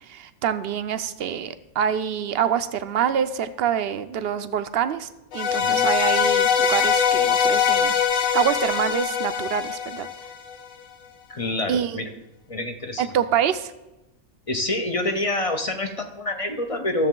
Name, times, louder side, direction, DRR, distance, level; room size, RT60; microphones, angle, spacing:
voice 1, 0.1-7.9 8.2-10.1 11.7-12.0 13.0-13.7, right 8 dB, 60° right, 11 dB, 0.7 m, -26 dB
sound 1, 5.3-10.6, left 7 dB, 85° left, 1.2 m, -22 dB
voice 2, 5.6-5.9 11.3-12.1 12.5-13.1 14.5-17.1, left 1 dB, 35° left, 7 dB, 0.6 m, -27 dB
13.0 x 7.1 x 3.8 m, 1.0 s
omnidirectional pair, 1.3 m